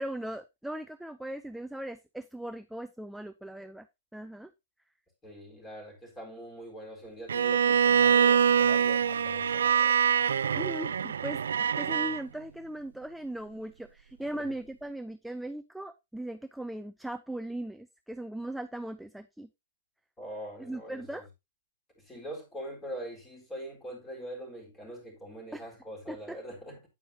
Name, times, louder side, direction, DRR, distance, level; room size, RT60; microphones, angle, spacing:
voice 1, 0.0-3.9 4.1-4.5 10.5-19.5 20.6-21.3 25.5-25.7 26.1-26.4, right 1 dB, ahead, 0.4 m, -39 dB
voice 2, 5.2-10.0 14.3-14.5 20.2-21.2 22.0-26.8, right 1 dB, 15° left, 4.1 m, -43 dB
Bowed string instrument, 7.3-12.2, right 8 dB, 70° right, 0.4 m, -24 dB
8.9 x 8.8 x 2.8 m
figure-of-eight pair, 115°, 0 cm